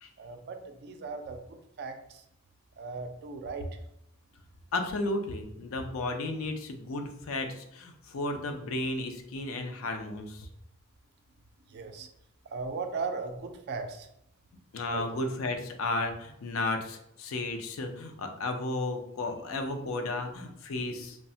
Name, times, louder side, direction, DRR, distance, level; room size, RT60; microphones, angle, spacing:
voice 1, 0.2-1.4 1.8-1.9 2.8-3.7 11.7-12.1 12.5-14.1 14.9-15.0, right 4 dB, 50° right, 6 dB, 0.3 m, -37 dB
voice 2, 4.7-10.5 14.7-21.2, left 2 dB, 65° left, 5 dB, 0.4 m, -33 dB
3.1 x 2.0 x 2.6 m, 0.77 s
head